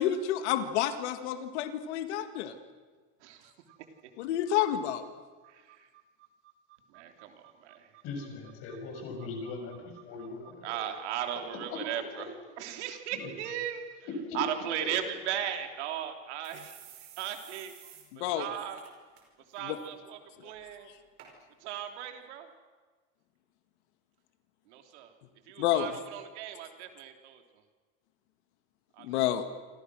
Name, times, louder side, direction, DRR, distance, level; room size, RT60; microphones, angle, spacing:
voice 1, 0.0-2.6 4.2-5.1 18.1-18.5 19.6-19.8 20.4-20.5 25.6-25.9 29.0-29.4, left 11 dB, 85° left, 9 dB, 2.0 m, -29 dB
voice 2, 3.2-3.8 5.4-6.0 6.9-8.0 8.7-8.8 10.2-13.9 14.3-16.8 17.2-17.7 18.3-18.8 19.5-20.9 21.6-22.5 24.7-25.1 25.5-27.4 28.9-29.3, right 10 dB, 85° right, 5 dB, 3.5 m, -37 dB
voice 3, 8.0-10.8 13.1-13.3 14.3-14.4 14.8-14.9, left 4 dB, 40° left, 2 dB, 7.1 m, -40 dB
sound 1, 15.5-15.6 15.9-16.0 16.4-18.1 18.4-18.5 18.8-19.2 19.6-19.9 20.6-20.7 21.2-21.3 22.0-22.1, right 10 dB, 40° right, 5.1 m, -52 dB
28.0 x 26.5 x 6.4 m, 1.4 s
cardioid pair, 175°, 33 cm